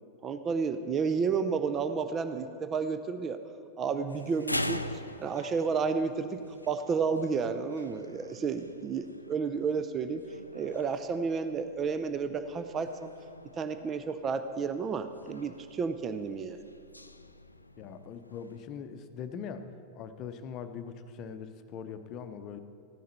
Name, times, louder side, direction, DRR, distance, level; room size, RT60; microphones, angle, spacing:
voice 1, 0.2-3.4 3.8-6.4 6.7-10.2 10.5-13.1 13.6-16.6, right 5 dB, 25° right, 9 dB, 0.5 m, -31 dB
sound 1, 4.1-18.7, left 1 dB, 85° left, 0.4 m, -43 dB
voice 2, 17.8-19.7 19.9-22.6, left 7 dB, 35° left, 9 dB, 0.7 m, -41 dB
15.0 x 10.0 x 4.3 m, 2.3 s
figure-of-eight pair, 90°, 0 cm